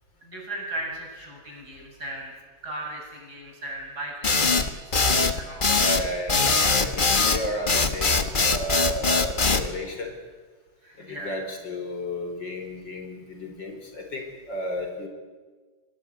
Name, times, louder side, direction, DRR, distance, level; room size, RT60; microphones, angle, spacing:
voice 1, 0.2-2.3 2.6-4.9 5.3-5.7 10.8-11.4, right 1 dB, 50° right, 0 dB, 7.9 m, -37 dB
sound 1, 4.2-9.7, left 4 dB, 30° left, 1.4 m, -21 dB
voice 2, 5.8-10.2 11.0-15.1, left 1 dB, 65° left, 4 dB, 4.7 m, -33 dB
24.0 x 19.0 x 9.6 m, 1.4 s
omnidirectional pair, 2.1 m